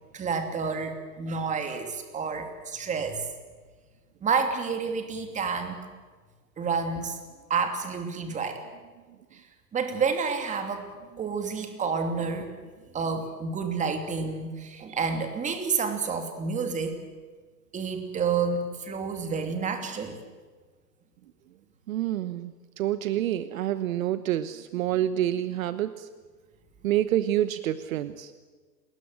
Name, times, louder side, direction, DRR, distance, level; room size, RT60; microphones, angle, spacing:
voice 1, 0.1-3.2 4.2-5.9 6.6-7.2 7.5-8.6 9.3-9.4 9.7-10.9 11.2-12.5 12.9-17.0 17.7-20.2, right 5 dB, 15° right, 6 dB, 2.7 m, -29 dB
voice 2, 21.9-26.1 26.8-28.3, right 12 dB, 55° right, 13 dB, 1.2 m, -28 dB
28.5 x 20.5 x 7.8 m, 1.4 s
hypercardioid pair, 140°, 49 cm